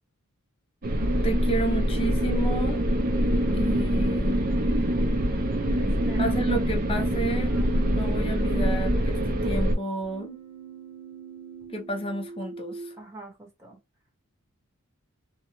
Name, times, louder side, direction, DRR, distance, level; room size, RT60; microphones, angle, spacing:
sound 1, 0.8-9.8, equal, 40° right, 0.6 m, -24 dB
voice 1, 1.2-2.8 3.5-4.4 6.2-7.5 7.9-10.4 11.7-12.9, right 1 dB, 25° left, 0.6 m, -31 dB
voice 2, 5.8-6.3 7.5-7.7 13.0-13.8, right 3 dB, 15° right, 1.1 m, -44 dB
Keyboard (musical), 7.0-13.0, right 7 dB, 80° right, 0.9 m, -42 dB
2.7 x 2.2 x 2.9 m
head